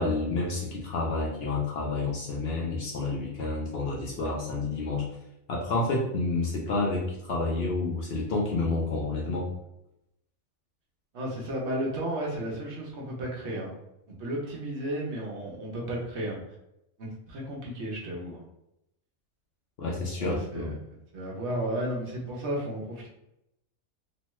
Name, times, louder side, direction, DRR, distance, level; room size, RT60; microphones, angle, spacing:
voice 1, 0.0-5.1 5.5-9.5 19.8-20.7, left 3 dB, 60° left, -2 dB, 0.7 m, -29 dB
voice 2, 11.1-13.7 14.2-16.4 17.0-18.4 20.2-20.8 21.1-23.1, right 1 dB, 60° right, -2 dB, 1.0 m, -33 dB
3.0 x 2.2 x 3.0 m, 0.84 s
omnidirectional pair, 1.4 m